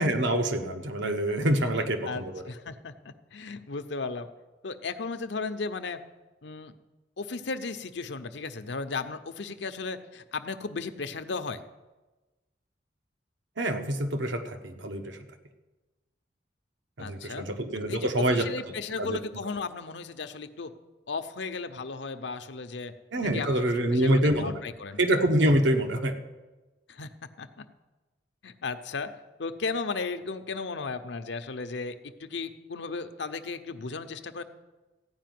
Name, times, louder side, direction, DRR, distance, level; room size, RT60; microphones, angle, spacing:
voice 1, 0.0-2.4 13.6-15.2 17.0-18.5 19.0-19.2 23.1-24.5 25.0-26.1, right 1 dB, 80° right, 6 dB, 1.1 m, -26 dB
voice 2, 2.0-4.3 4.6-6.0 6.4-6.7 7.2-11.6 17.0-17.5 17.9-20.7 21.1-22.9 23.2-23.5 23.9-25.0 26.9-27.7 28.4-29.1 29.4-34.4, left 4 dB, 75° left, 9 dB, 0.7 m, -35 dB
15.0 x 5.2 x 9.3 m, 1.2 s
head